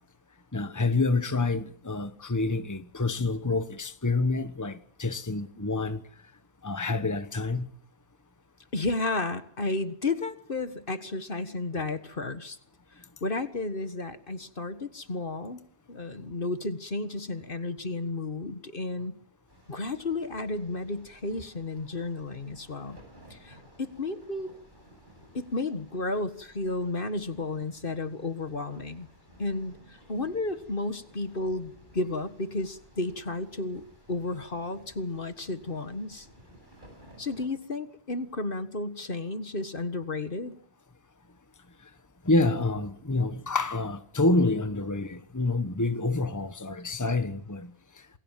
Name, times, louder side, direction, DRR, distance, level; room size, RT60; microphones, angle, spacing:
voice 1, 0.5-6.0 6.6-7.7 42.2-47.7, left 2 dB, 15° left, 1.3 m, -27 dB
voice 2, 8.7-12.6 12.9-15.6 15.9-19.2 19.7-23.0 23.3-24.5 25.3-29.1 29.4-36.3 37.2-40.6, left 2 dB, 55° left, 1.8 m, -33 dB
sound 1, 19.5-37.5, right 1 dB, 50° right, 8.3 m, -56 dB
28.5 x 21.0 x 7.5 m
omnidirectional pair, 1.1 m